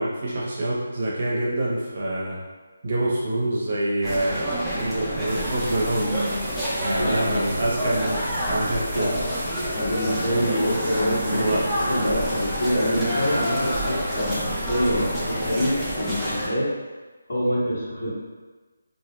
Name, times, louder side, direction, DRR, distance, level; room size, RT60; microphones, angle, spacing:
voice 1, 0.0-2.4 2.8-6.3 6.8-9.1 11.3-11.6, right 1 dB, 45° right, -5 dB, 0.6 m, -26 dB
sound 1, 4.0-16.5, equal, ahead, 0.3 m, -28 dB
sound 2, 5.2-16.0, right 1 dB, 25° right, 0.9 m, -37 dB
voice 2, 7.0-7.5 8.9-9.1 9.7-16.7 17.3-18.1, equal, 60° left, -8 dB, 1.1 m, -25 dB
2.2 x 2.0 x 3.0 m, 1.3 s
figure-of-eight pair, 170°, 0 cm